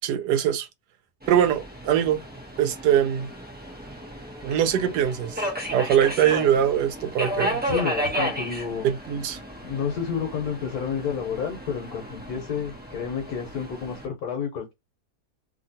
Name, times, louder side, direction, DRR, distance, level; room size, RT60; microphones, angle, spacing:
voice 1, 0.0-0.7 1.3-2.2 2.6-3.3 4.4-5.4 5.7-7.6 8.8-9.4, right 9 dB, 85° right, 1.2 m, -22 dB
Subway metro underground, 1.2-14.0, equal, 15° right, 0.4 m, -33 dB
voice 2, 7.7-8.9 9.6-14.7, left 7 dB, 70° left, 1.3 m, -30 dB
2.8 x 2.8 x 2.7 m
omnidirectional pair, 1.7 m